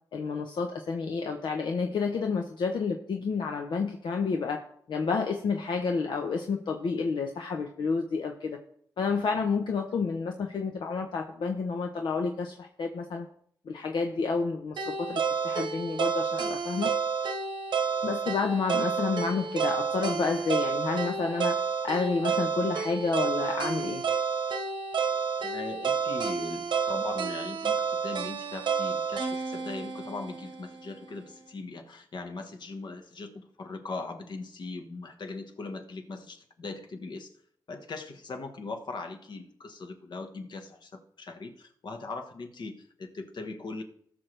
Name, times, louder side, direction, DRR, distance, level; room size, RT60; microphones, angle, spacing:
voice 1, 0.1-4.6 4.9-8.6 9.0-13.2 13.7-16.9 18.0-21.6 21.8-24.0, left 4 dB, 85° left, 3 dB, 0.8 m, -30 dB
sound 1, 14.8-30.9, right 6 dB, 80° right, 1.1 m, -30 dB
voice 2, 25.4-37.3 37.7-43.8, left 3 dB, 70° left, 5 dB, 1.4 m, -40 dB
18.0 x 6.3 x 3.3 m, 0.64 s
cardioid pair, 75°, 8 cm